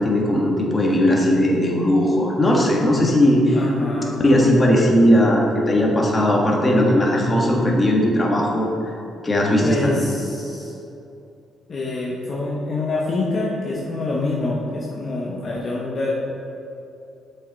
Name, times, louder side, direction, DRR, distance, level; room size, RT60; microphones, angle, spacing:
voice 1, 0.0-3.6 4.2-8.7 9.2-9.9, left 1 dB, 25° left, -2 dB, 1.5 m, -18 dB
voice 2, 3.5-4.2 9.6-10.7 11.7-16.1, left 2 dB, 45° left, -4 dB, 1.0 m, -26 dB
6.9 x 5.7 x 4.0 m, 2.8 s
cardioid pair, 90°, 0 cm